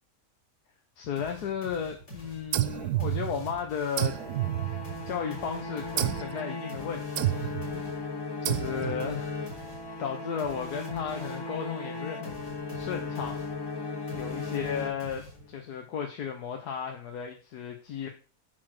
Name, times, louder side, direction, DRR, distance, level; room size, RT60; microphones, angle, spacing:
voice 1, 1.0-4.2 4.6-8.2 8.5-9.7 10.0-13.5 13.7-18.1, left 7 dB, 90° left, 4 dB, 1.5 m, -35 dB
sound 1, 1.2-4.2 4.8-11.6 12.2-15.7, right 1 dB, 45° left, 3.6 m, -48 dB
sound 2, 2.5-3.6 4.0-5.3 6.0-6.4 7.2-7.7 8.5-9.1, right 14 dB, 80° right, 1.1 m, -30 dB
sound 3, 4.0-15.5, left 3 dB, 25° left, 0.5 m, -37 dB
8.8 x 4.3 x 6.1 m, 0.37 s
omnidirectional pair, 1.6 m